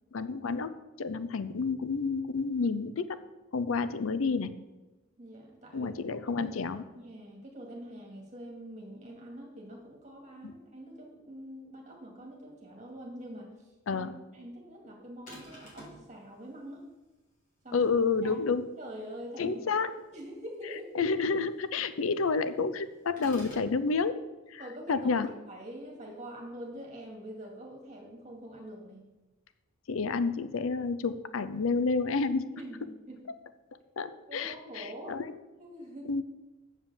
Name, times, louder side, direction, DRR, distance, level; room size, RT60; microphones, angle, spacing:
voice 1, 0.1-3.2 3.5-4.5 5.7-6.8 10.4-10.5 13.9-14.1 17.7-18.7 19.4-19.9 20.9-24.1 24.5-24.6 24.9-25.3 29.9-32.5 34.0-35.3 36.0-36.2, left 4 dB, 80° left, 13 dB, 0.6 m, -30 dB
voice 2, 5.2-5.9 6.2-16.8 17.6-17.9 18.3-18.4 18.8-19.8 20.1-21.0 24.6-29.0 32.5-33.3 34.3-35.2 35.6-36.1, equal, 35° right, 0 dB, 2.5 m, -45 dB
sound 1, 15.3-16.1 23.2-23.7, equal, 40° left, 3.2 m, -47 dB
7.3 x 7.3 x 7.1 m, 1.1 s
head